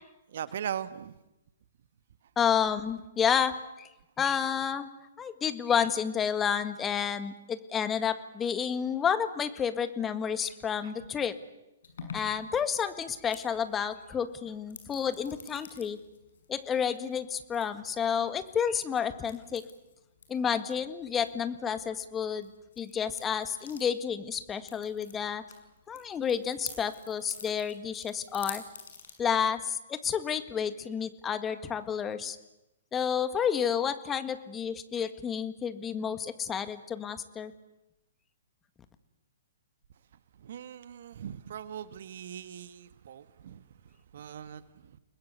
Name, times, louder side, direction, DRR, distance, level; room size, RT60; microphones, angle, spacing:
voice 1, 0.3-1.1 10.8-10.9 40.4-43.6 44.1-45.0, right 9 dB, 55° right, 13 dB, 1.4 m, -40 dB
voice 2, 2.4-3.9 4.2-4.9 5.2-11.4 12.1-16.0 16.5-19.6 20.3-22.5 22.8-25.4 25.9-28.6 29.2-32.4 32.9-37.5, left 7 dB, 15° left, 10 dB, 1.8 m, -30 dB
sound 1, 11.8-29.1, left 6 dB, 65° left, 6.9 m, -49 dB
29.5 x 20.5 x 8.3 m, 0.92 s
figure-of-eight pair, 120°, 0 cm